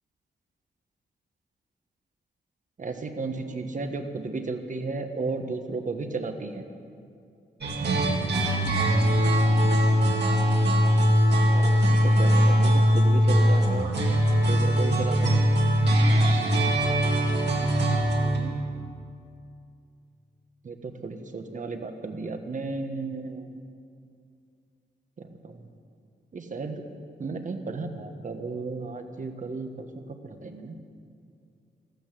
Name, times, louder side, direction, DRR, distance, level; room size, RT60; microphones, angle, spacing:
voice 1, 2.8-6.6 9.2-9.8 11.5-13.9 14.4-15.4 18.2-18.6 20.6-23.5 25.4-25.5 26.3-26.8 27.2-29.9 30.4-30.8, right 3 dB, 45° right, 6 dB, 1.4 m, -34 dB
sound 1, 7.6-18.4, equal, 80° right, 2.8 m, -21 dB
15.0 x 12.5 x 7.6 m, 2.4 s
wide cardioid pair, 110°, 18 cm